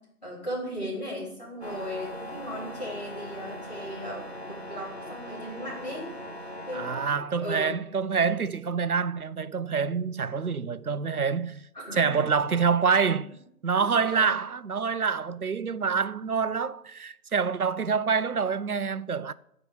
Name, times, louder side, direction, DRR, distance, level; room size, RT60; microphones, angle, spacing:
voice 1, 0.2-6.1 6.7-7.1 7.4-7.7 11.7-12.1 13.7-14.3, equal, 30° left, 4.5 m, -37 dB
sound 1, 1.6-7.1, left 1 dB, 45° left, 1.7 m, -40 dB
voice 2, 6.7-13.3 13.6-19.3, right 5 dB, 75° right, 0.7 m, -26 dB
14.0 x 4.9 x 8.1 m
figure-of-eight pair, 180°, 45 cm